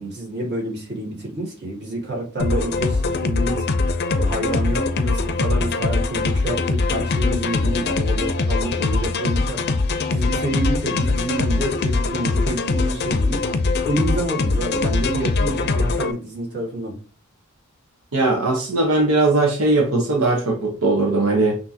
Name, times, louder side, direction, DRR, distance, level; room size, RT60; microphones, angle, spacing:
voice 1, 0.0-9.8 10.1-13.4 13.8-16.9, right 1 dB, 50° right, 1.9 m, -28 dB
sound 1, 2.4-16.1, left 3 dB, 50° left, 0.5 m, -22 dB
voice 2, 18.1-21.5, right 2 dB, 90° right, 1.1 m, -19 dB
6.0 x 2.9 x 2.8 m
head